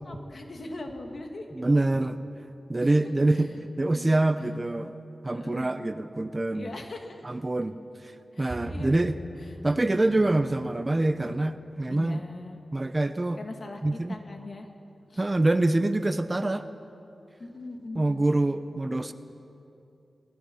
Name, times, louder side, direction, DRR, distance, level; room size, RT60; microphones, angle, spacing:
voice 1, 0.0-2.0 2.8-2.9 3.3-4.2 5.3-5.9 6.5-7.2 8.3-9.0 9.4-10.1 11.9-12.6 13.4-14.7 15.1-15.3 17.4-18.2, left 2 dB, 55° left, 3 dB, 2.6 m, -41 dB
voice 2, 1.6-2.1 2.7-4.9 5.2-6.7 7.2-7.8 8.4-9.2 9.6-12.2 12.7-13.4 13.8-14.2 15.2-16.7 17.9-19.1, right 2 dB, 30° right, 10 dB, 0.9 m, -25 dB
Bowed string instrument, 8.5-11.9, equal, 60° right, 3.3 m, -42 dB
30.0 x 19.5 x 5.8 m, 2.7 s
wide cardioid pair, 75°, 0 cm